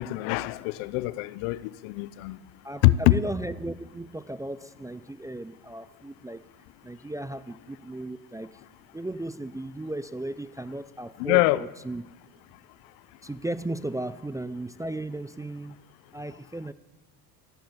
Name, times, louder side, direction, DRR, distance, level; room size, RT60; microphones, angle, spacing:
voice 1, 0.0-2.4 2.8-3.2 11.2-11.7, left 18 dB, 70° left, 0.7 m, -24 dB
voice 2, 2.6-6.5 6.8-8.6 8.9-12.0 13.2-15.8 16.1-16.7, right 1 dB, 5° right, 0.4 m, -35 dB
16.0 x 11.5 x 7.3 m
hypercardioid pair, 70°, 47 cm